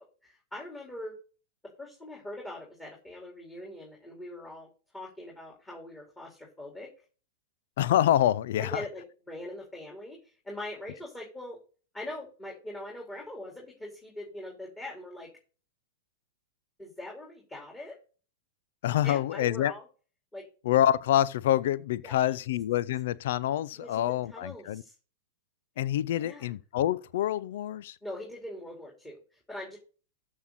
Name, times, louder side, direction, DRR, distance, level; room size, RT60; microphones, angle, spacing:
voice 1, 0.2-1.1 1.8-4.7 4.9-6.9 8.6-11.6 11.9-15.3 16.8-18.0 19.0-19.8 20.3-20.4 22.0-22.4 23.7-24.9 26.1-26.5 28.0-29.8, left 1 dB, 15° left, 4.2 m, -42 dB
voice 2, 7.8-8.8 18.8-19.7 20.6-24.8 25.8-28.0, left 12 dB, 60° left, 0.5 m, -26 dB
13.5 x 6.5 x 4.2 m
hypercardioid pair, 105°, 0 cm